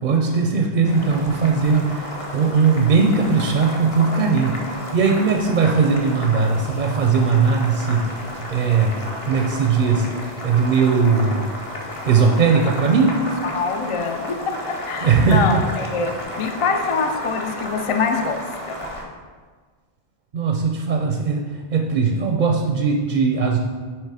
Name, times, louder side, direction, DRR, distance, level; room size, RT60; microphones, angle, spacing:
voice 1, 0.0-8.2 8.5-9.0 9.3-10.1 10.4-11.4 12.1-13.1 15.0-15.7 20.3-23.6, right 5 dB, 55° right, 3 dB, 0.6 m, -19 dB
Boiling, 0.8-19.0, equal, 35° left, 0.9 m, -33 dB
voice 2, 13.4-18.4 18.7-18.8, left 5 dB, 50° left, 5 dB, 0.4 m, -24 dB
7.7 x 3.1 x 4.8 m, 1.5 s
omnidirectional pair, 1.0 m